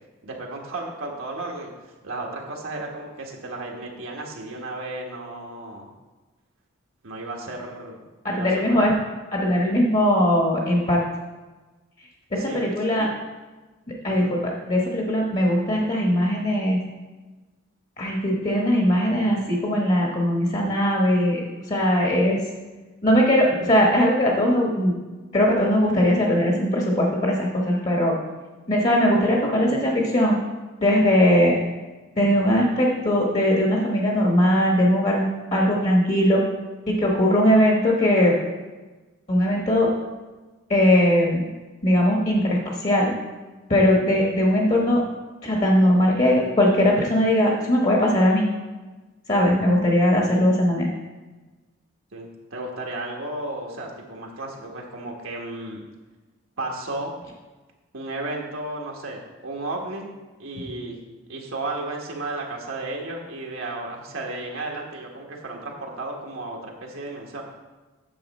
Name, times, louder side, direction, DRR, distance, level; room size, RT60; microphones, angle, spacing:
voice 1, 0.2-5.9 7.0-8.0 8.3-8.9 12.4-12.6 13.0-13.1 14.1-14.3 52.1-55.8 56.6-57.1 57.9-60.1 60.4-61.0 61.3-67.4, right 2 dB, 80° right, -1 dB, 1.3 m, -34 dB
voice 2, 8.2-8.9 9.3-11.0 12.3-13.1 13.9-16.8 18.0-21.4 21.7-22.4 23.0-24.9 25.3-28.1 28.7-30.4 30.8-31.5 32.2-36.4 36.9-38.3 39.3-39.9 40.7-41.4 41.8-43.1 43.7-45.0 45.4-48.4 49.3-50.9, equal, 35° left, -1 dB, 1.1 m, -20 dB
8.6 x 6.8 x 4.2 m, 1.2 s
head